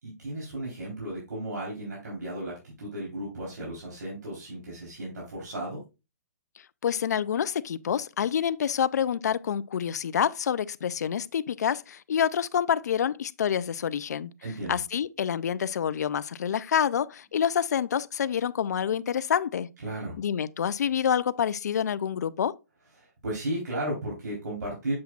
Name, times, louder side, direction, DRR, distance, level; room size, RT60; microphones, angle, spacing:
voice 1, 0.0-5.8 14.4-14.8 19.8-20.2 23.0-24.9, right 1 dB, 85° right, 3.7 m, -34 dB
voice 2, 6.8-14.3 14.7-19.7 20.2-22.6, left 8 dB, 75° left, 0.4 m, -27 dB
7.5 x 7.1 x 2.4 m
hypercardioid pair, 170°, 9 cm